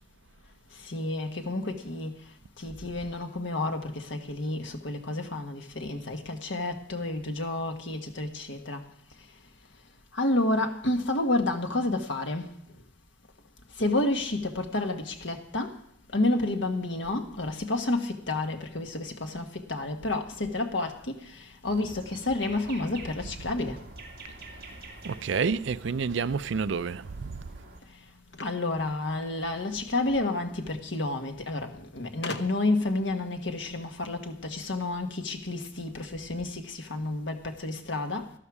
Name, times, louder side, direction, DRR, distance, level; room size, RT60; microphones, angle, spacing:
voice 1, 0.8-2.2 2.6-8.8 10.1-12.5 13.8-15.8 16.1-23.8 28.4-38.4, left 2 dB, 75° left, 1.5 m, -30 dB
sound 1, 21.6-27.8, right 2 dB, 50° right, 2.4 m, -46 dB
voice 2, 25.0-27.4, right 5 dB, 75° right, 0.5 m, -29 dB
sound 2, 28.3-29.7 30.8-30.9 31.2-31.3 32.2-32.9, left 3 dB, 60° left, 0.9 m, -40 dB
13.0 x 12.5 x 4.8 m
head